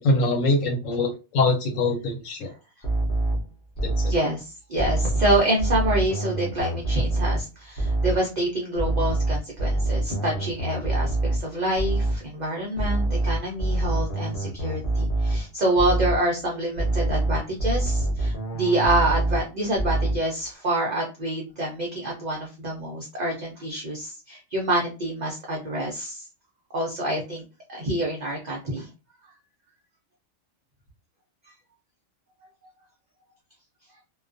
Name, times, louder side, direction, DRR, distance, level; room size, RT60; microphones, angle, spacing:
voice 1, 0.0-2.5 3.8-4.1, left 2 dB, 85° left, 2 dB, 1.0 m, -23 dB
sound 1, 2.8-4.3 4.8-7.5 7.8-8.3 8.8-12.3 12.8-15.5 15.8-16.3 16.8-19.5 19.8-20.3, right 2 dB, 50° left, 0.7 m, -25 dB
voice 2, 4.0-26.2 26.7-27.4 27.7-28.9, right 1 dB, 50° right, -2 dB, 0.5 m, -27 dB
2.3 x 2.2 x 2.5 m, 0.30 s
omnidirectional pair, 1.4 m